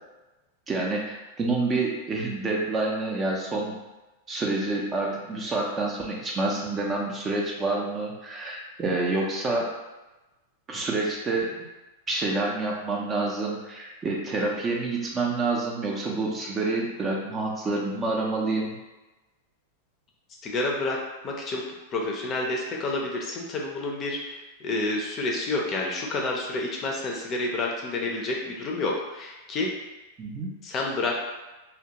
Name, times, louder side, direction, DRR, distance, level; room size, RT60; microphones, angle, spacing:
voice 1, 0.7-3.7 4.3-9.7 10.7-11.6 12.1-18.8 30.2-30.5, right 3 dB, 25° right, -1 dB, 0.5 m, -28 dB
voice 2, 20.4-21.0 21.2-21.6 21.9-29.7 30.6-31.2, left 2 dB, 30° left, -1 dB, 0.5 m, -29 dB
2.3 x 2.2 x 2.8 m, 1.1 s
hypercardioid pair, 130°, 0 cm